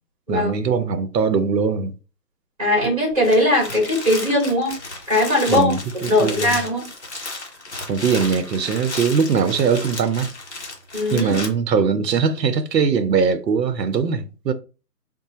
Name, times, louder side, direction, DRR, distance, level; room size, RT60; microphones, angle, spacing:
voice 1, 0.3-1.9 5.5-6.6 7.9-10.3 11.1-14.5, right 6 dB, 90° right, 0.7 m, -21 dB
voice 2, 2.6-4.7 5.1-5.7 6.1-6.9 10.9-11.3, left 1 dB, 20° right, 1.4 m, -19 dB
sound 1, 3.1-11.5, left 2 dB, 45° left, 0.6 m, -33 dB
3.9 x 2.1 x 2.8 m
hypercardioid pair, 175°, 48 cm